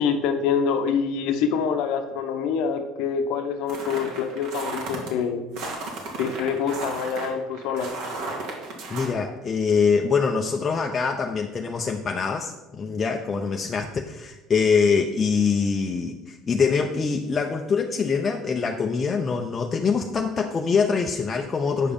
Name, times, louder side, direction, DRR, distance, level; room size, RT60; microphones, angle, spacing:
voice 1, 0.0-5.4 6.2-7.9, left 6 dB, 70° left, 7 dB, 0.9 m, -25 dB
sound 1, 3.7-5.1 5.5-9.1, right 3 dB, 65° right, 2.2 m, -34 dB
voice 2, 8.9-21.9, left 5 dB, 30° left, 2 dB, 0.7 m, -24 dB
8.4 x 5.0 x 5.3 m, 1.0 s
hypercardioid pair, 80°, 0 cm